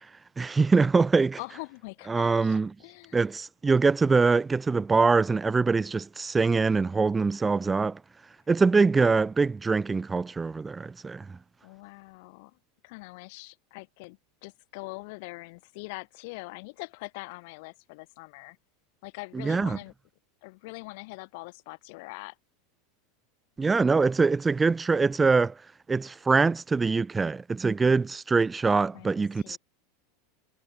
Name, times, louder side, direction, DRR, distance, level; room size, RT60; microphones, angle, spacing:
voice 1, 0.4-1.4 2.1-2.7 3.1-8.0 8.5-11.2 19.3-19.8 23.6-25.5 25.9-29.6, right 4 dB, 10° right, 0.9 m, -23 dB
voice 2, 1.4-3.2 11.6-12.5 12.8-18.6 19.0-19.9 20.4-22.3 28.9-29.6, left 27 dB, 50° left, 4.5 m, -43 dB
supercardioid pair, 170°, 0 cm